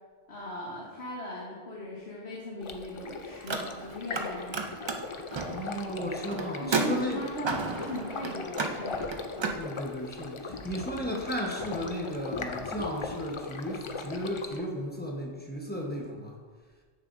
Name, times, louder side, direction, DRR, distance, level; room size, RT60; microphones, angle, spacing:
voice 1, 0.3-5.0 5.6-9.3, left 1 dB, 80° left, -6 dB, 1.6 m, -39 dB
Stream, 2.6-14.6, left 4 dB, 45° left, 0.4 m, -39 dB
Car, 3.3-4.2 4.5-9.6, right 4 dB, 35° right, 0.5 m, -33 dB
voice 2, 5.4-7.3 9.6-16.4, equal, 10° left, -2 dB, 0.9 m, -35 dB
9.0 x 6.8 x 2.6 m, 1.5 s
omnidirectional pair, 1.1 m